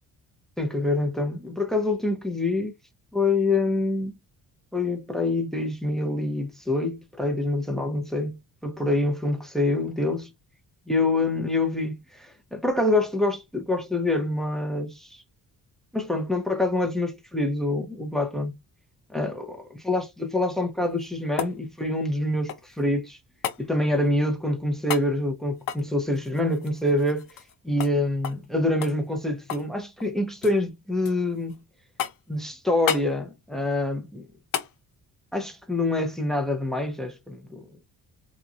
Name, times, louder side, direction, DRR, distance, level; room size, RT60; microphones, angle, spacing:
voice 1, 0.6-2.7 3.1-4.1 4.7-10.3 10.9-15.2 15.9-18.6 19.1-23.2 23.6-27.4 27.6-31.6 32.3-34.3 35.3-37.8, left 2 dB, ahead, 0.7 m, -26 dB
sound 1, 20.8-22.8 23.4-23.6 24.9-25.1 25.6-27.5 27.8-27.9 28.2-28.5 28.8-29.7 30.0-30.6 31.0-31.6 32.0-32.4 32.9-33.1 34.5-34.7 37.1-37.2, left 9 dB, 60° left, 0.6 m, -33 dB
3.0 x 2.5 x 2.4 m
cardioid pair, 100°, 38 cm